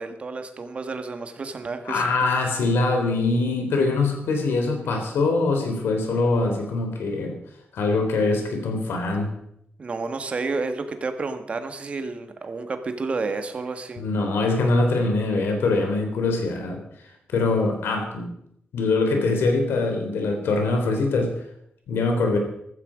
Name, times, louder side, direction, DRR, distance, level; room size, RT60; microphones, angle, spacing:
voice 1, 0.0-2.1 9.8-14.0, right 3 dB, 35° right, 8 dB, 1.5 m, -30 dB
voice 2, 1.8-7.3 7.7-9.3 14.0-16.8 17.3-18.3 18.7-21.3 21.9-22.4, left 3 dB, 90° left, 4 dB, 3.4 m, -23 dB
15.0 x 13.5 x 5.1 m, 0.74 s
wide cardioid pair, 165°, 4 cm